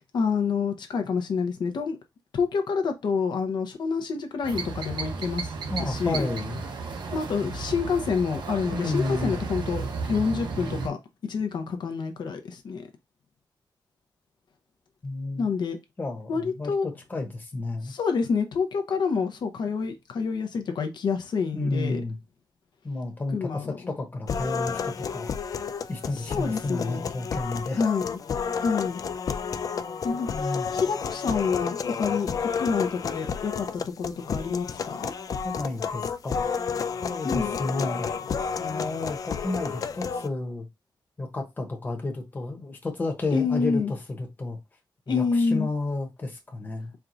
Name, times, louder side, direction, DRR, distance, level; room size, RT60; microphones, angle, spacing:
voice 1, 0.0-2.0 2.3-5.5 5.8-6.3 7.1-11.0 11.3-12.9 15.4-15.8 16.3-16.9 17.9-22.0 23.3-23.8 26.1-27.1 27.7-28.2 28.5-29.0 30.0-35.1 37.2-37.6 43.3-43.9 45.1-45.7, left 5 dB, 80° left, 0.7 m, -28 dB
sound 1, 4.4-10.9, right 4 dB, 85° right, 1.0 m, -33 dB
voice 2, 5.7-6.6 8.7-9.4 15.0-15.5 16.0-17.9 21.5-22.2 22.8-27.8 30.3-30.7 35.4-36.5 37.0-38.1 38.6-40.7 41.2-44.6 45.1-46.9, left 2 dB, 25° left, 1.0 m, -31 dB
sound 2, 24.3-40.3, left 6 dB, 50° left, 0.3 m, -31 dB
4.6 x 2.3 x 3.8 m
wide cardioid pair, 170°, 7 cm